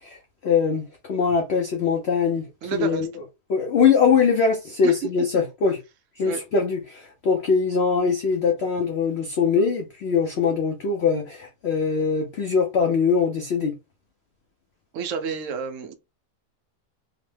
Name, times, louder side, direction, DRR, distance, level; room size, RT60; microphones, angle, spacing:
voice 1, 0.0-2.5 2.7-3.2 3.5-5.8 6.2-13.7, left 5 dB, 85° left, 0.5 m, -22 dB
voice 2, 2.6-3.1 4.8-4.9 6.3-6.4 14.9-16.0, right 6 dB, 70° right, 0.7 m, -29 dB
2.9 x 2.0 x 3.2 m
omnidirectional pair, 1.8 m